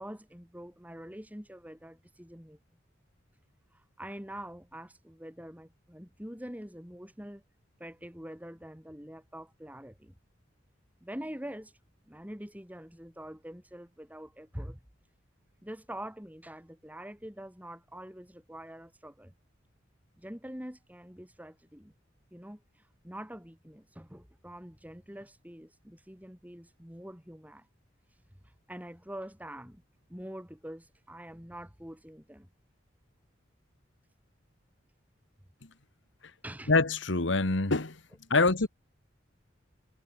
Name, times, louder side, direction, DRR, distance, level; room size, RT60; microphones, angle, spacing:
voice 1, 0.0-2.6 3.7-7.4 7.8-10.1 11.0-11.7 12.1-14.8 15.6-19.3 20.2-21.9 22.3-27.7 28.4-29.8 30.1-32.5 36.4-36.7 38.3-38.5, right 1 dB, 10° right, 4.6 m, -45 dB
voice 2, 36.7-38.0 38.3-38.7, left 3 dB, 75° left, 1.6 m, -25 dB
head